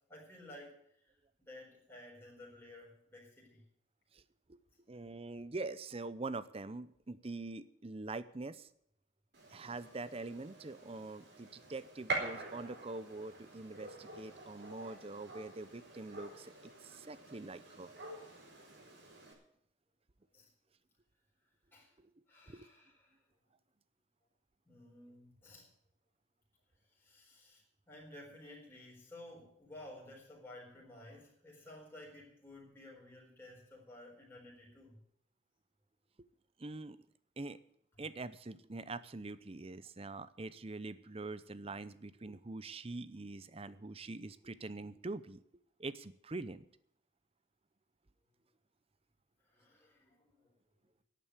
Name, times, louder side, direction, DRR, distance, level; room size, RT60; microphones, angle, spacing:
voice 1, 0.1-1.1 1.4-3.6 20.3-20.5 21.7-21.9 22.3-23.2 24.7-25.7 26.9-35.0 49.4-50.5, left 1 dB, 10° left, -3 dB, 4.4 m, -54 dB
voice 2, 4.9-8.7 9.5-17.9 22.0-22.1 22.5-22.7 36.6-37.0 37.4-37.6 38.0-45.4 45.8-46.6, right 3 dB, 30° right, 15 dB, 0.7 m, -44 dB
Gunshot gunfire, 9.3-19.3, right 2 dB, 60° right, 4.3 m, -46 dB
11.0 x 9.1 x 9.6 m, 0.71 s
head